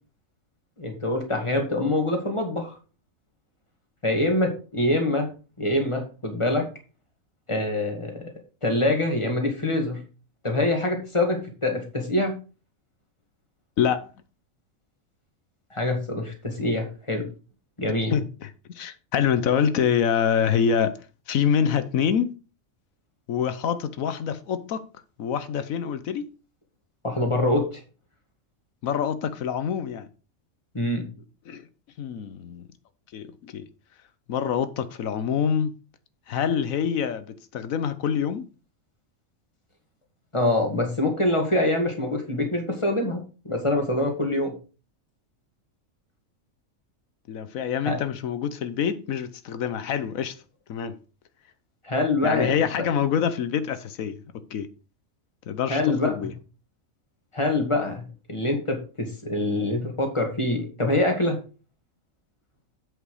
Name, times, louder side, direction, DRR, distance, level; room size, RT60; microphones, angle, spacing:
voice 1, 0.8-2.7 4.0-5.3 5.6-6.6 7.5-8.3 8.6-10.0 10.4-12.4 15.7-17.3 17.8-18.1 27.0-27.8 30.7-31.1 40.3-43.2 43.5-44.5 47.8-48.0 51.8-52.5 52.8-52.9 55.7-56.3 57.3-61.4, left 1 dB, 20° left, 2.1 m, -25 dB
voice 2, 13.8-14.1 18.1-18.5 18.8-21.0 21.3-22.3 23.3-24.8 25.2-26.2 28.8-30.1 31.5-31.6 32.0-32.7 33.1-33.6 34.3-35.7 36.3-38.5 47.3-50.3 50.7-50.9 52.2-54.2 54.5-54.7 55.5-56.3, left 7 dB, 80° left, 1.2 m, -26 dB
8.1 x 5.7 x 4.9 m
omnidirectional pair, 1.4 m